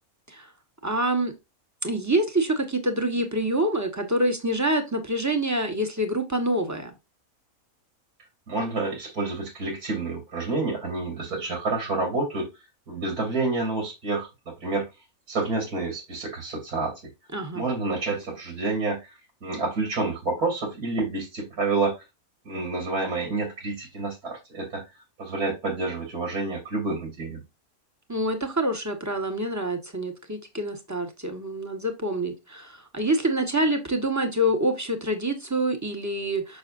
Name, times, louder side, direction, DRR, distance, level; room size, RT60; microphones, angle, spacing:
voice 1, 0.8-1.3 1.8-6.9 17.3-17.6 28.1-36.6, right 1 dB, 10° right, 1.2 m, -26 dB
voice 2, 8.5-12.5 12.9-14.9 15.3-17.0 17.5-22.0 22.5-24.9 25.2-27.4, right 3 dB, 90° right, 3.5 m, -29 dB
6.8 x 6.3 x 2.6 m
omnidirectional pair, 1.6 m